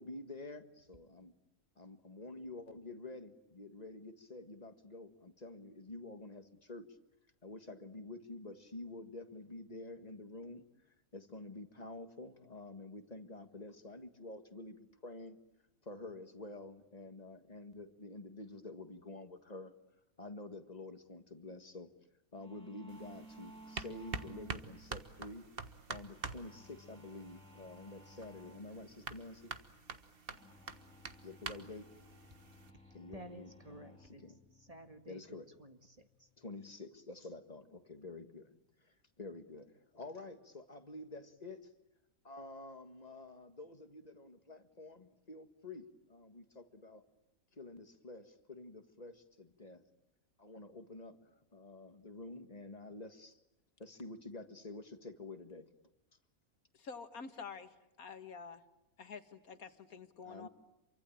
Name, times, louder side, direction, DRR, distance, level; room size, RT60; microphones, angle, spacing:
voice 1, 0.0-1.3 1.8-6.9 7.4-10.6 11.1-15.4 15.8-19.7 20.2-21.9 22.3-25.5 25.9-29.4 31.2-31.9 32.9-34.4 35.1-35.5 36.4-38.5 38.8-41.7 42.2-47.0 47.5-49.8 50.4-53.4 53.8-55.7 60.3-60.5, left 2 dB, 30° left, 8 dB, 1.9 m, -49 dB
sound 1, 22.4-36.8, equal, 5° left, 3.8 m, -59 dB
sound 2, 22.9-32.7, right 4 dB, 40° right, 1.5 m, -47 dB
voice 2, 32.7-34.2 34.6-35.2 35.6-36.3, right 2 dB, 25° right, 7 dB, 1.8 m, -54 dB
voice 3, 56.7-58.6 59.0-60.5, left 5 dB, 85° left, 9 dB, 2.1 m, -48 dB
28.0 x 24.0 x 8.8 m, 0.91 s
omnidirectional pair, 1.5 m